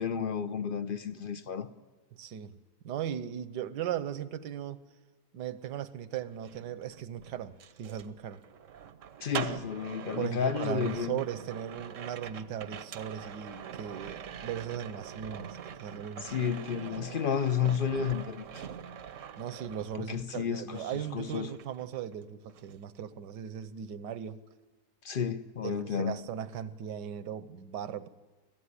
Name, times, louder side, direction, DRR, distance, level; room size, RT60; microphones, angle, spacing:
voice 1, 0.0-1.7 9.2-11.2 16.2-18.6 20.1-21.5 25.0-26.2, left 7 dB, 45° left, 0.7 m, -32 dB
voice 2, 2.1-2.5 2.8-4.8 5.3-8.4 10.2-16.5 19.4-24.4 25.6-28.1, right 9 dB, 80° right, 1.5 m, -38 dB
sound 1, 6.3-20.4 20.7-22.2 22.5-22.8, right 8 dB, 55° right, 1.0 m, -44 dB
23.5 x 15.5 x 9.7 m
omnidirectional pair, 1.9 m